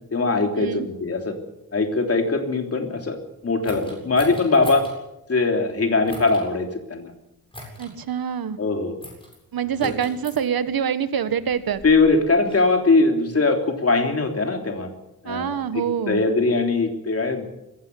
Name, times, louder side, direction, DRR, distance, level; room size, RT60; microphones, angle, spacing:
voice 1, 0.1-1.3 1.7-3.2 3.4-4.9 5.3-7.1 8.6-9.0 9.8-9.9 11.8-14.9 15.2-15.5 16.1-17.5, left 3 dB, 40° left, 4 dB, 3.3 m, -21 dB
sound 1, 3.6-5.0 6.0-6.4 7.5-7.9 9.0-9.4 9.8-10.4 11.3-12.7, left 1 dB, 15° left, 7.8 m, -40 dB
voice 2, 7.8-8.6 9.5-11.8 15.2-16.2, right 8 dB, 75° right, 12 dB, 1.5 m, -25 dB
21.0 x 16.5 x 8.4 m, 0.88 s
wide cardioid pair, 155°, 35 cm